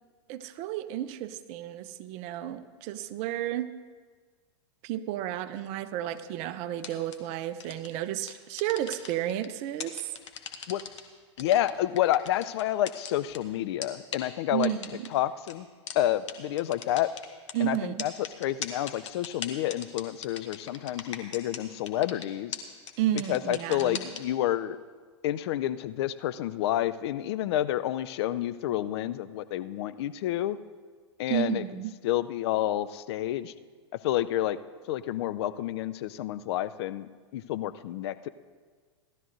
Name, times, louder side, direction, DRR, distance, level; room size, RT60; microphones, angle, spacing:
voice 1, 0.3-3.7 4.8-10.1 14.5-15.1 17.5-18.1 23.0-24.0 31.3-31.9, right 12 dB, 45° right, 12 dB, 0.7 m, -32 dB
sound 1, 6.8-7.2 7.6-7.9 8.3-9.5 9.8-11.0 11.4-13.4 13.8-13.9 14.1-14.2 14.6-15.1 15.5-15.6 15.9-16.0 16.3-16.4 16.6-17.5 18.0-21.6 21.9-22.2 22.5-22.6 22.9-23.0 23.2-24.2, left 8 dB, 75° left, 1.3 m, -37 dB
voice 2, 11.4-14.7 15.1-15.7 15.9-17.1 17.6-18.1 18.4-22.6 23.3-24.8 25.2-30.6 31.2-31.6 32.0-33.5 34.0-34.6 34.9-38.3, left 13 dB, 60° left, 14 dB, 0.5 m, -29 dB
18.0 x 12.5 x 2.6 m, 1.5 s
hypercardioid pair, 100°, 16 cm